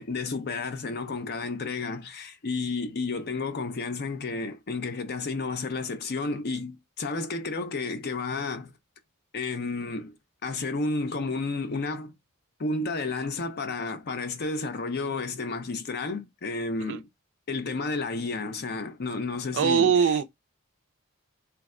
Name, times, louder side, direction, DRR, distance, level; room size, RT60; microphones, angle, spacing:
voice 1, 0.0-8.7 9.3-10.2 10.4-12.1 12.6-17.1 17.5-20.2, left 3 dB, 45° left, 0.5 m, -31 dB
voice 2, 19.5-20.2, right 7 dB, 55° right, 0.4 m, -22 dB
3.3 x 2.1 x 3.5 m
head